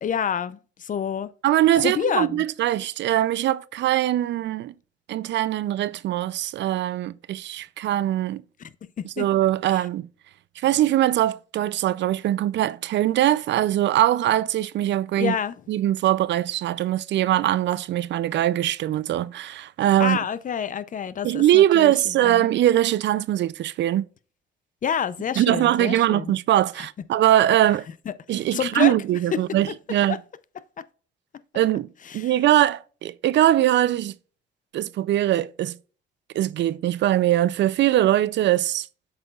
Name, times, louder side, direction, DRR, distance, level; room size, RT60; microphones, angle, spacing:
voice 1, 0.0-1.3 1.7-2.4 8.6-8.7 9.2-9.3 9.7-9.8 15.2-15.5 20.0-21.9 22.2-22.5 24.8-26.3 28.1-28.9 29.3-29.4 30.1-30.2 32.1-32.3, left 8 dB, 40° left, 0.5 m, -28 dB
voice 2, 1.4-4.7 5.1-8.4 9.0-10.1 10.6-15.4 15.7-20.2 21.2-24.1 25.4-27.9 28.3-30.2 31.5-31.9 32.1-34.1 34.7-35.8 36.3-38.9, right 13 dB, 65° right, 0.4 m, -22 dB
7.8 x 5.6 x 2.3 m
cardioid pair, 90°, 20 cm